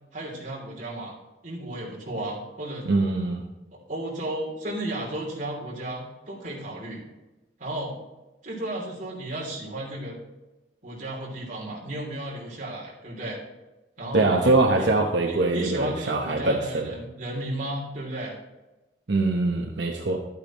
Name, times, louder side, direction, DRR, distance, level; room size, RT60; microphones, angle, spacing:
voice 1, 0.1-1.1 1.4-2.9 3.7-7.0 7.6-8.0 8.4-10.2 10.8-13.4 14.0-14.9 15.2-18.3, right 1 dB, 45° right, -3 dB, 3.0 m, -34 dB
voice 2, 2.9-3.4 14.1-16.9 19.1-20.2, right 2 dB, 85° right, 1 dB, 1.0 m, -23 dB
12.0 x 8.8 x 3.0 m, 1.1 s
head